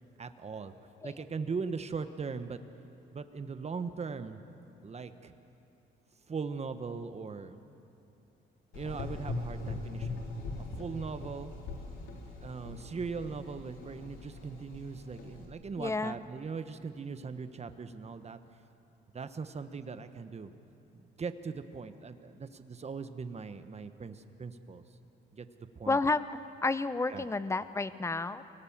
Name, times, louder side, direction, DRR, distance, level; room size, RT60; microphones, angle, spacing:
voice 1, 0.2-0.7 1.0-2.6 3.1-4.4 4.8-5.3 6.3-7.6 8.7-10.2 10.6-11.5 12.4-18.4 19.1-20.5 20.9-24.8 25.3-25.5 25.7-26.0 27.1-27.2, right 5 dB, 35° right, 10 dB, 1.2 m, -39 dB
Gurgling / Engine, 8.7-15.5, left 3 dB, 85° left, 3.2 m, -41 dB
voice 2, 15.8-16.2 25.9-28.4, left 3 dB, 15° left, 14 dB, 0.7 m, -31 dB
25.0 x 18.0 x 7.3 m, 2.8 s
cardioid pair, 90°, 20 cm